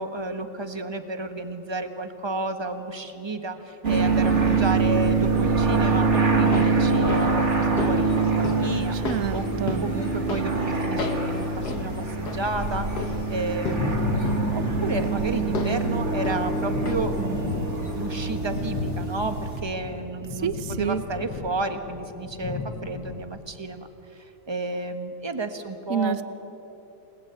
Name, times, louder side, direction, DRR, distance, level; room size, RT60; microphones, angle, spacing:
voice 1, 0.0-9.0 9.3-9.4 9.8-26.2, right 2 dB, 15° right, 7 dB, 1.2 m, -32 dB
sound 1, 3.8-19.6, right 4 dB, 35° right, 2.6 m, -24 dB
sound 2, 6.2-17.3 17.5-17.6, left 3 dB, 60° left, 2.2 m, -36 dB
voice 2, 8.9-9.9 20.3-21.0 25.9-26.2, right 8 dB, 50° right, 12 dB, 1.2 m, -28 dB
Thunder, 13.6-23.2, left 5 dB, 75° left, 1.9 m, -33 dB
28.5 x 19.5 x 8.9 m, 2.9 s
omnidirectional pair, 2.1 m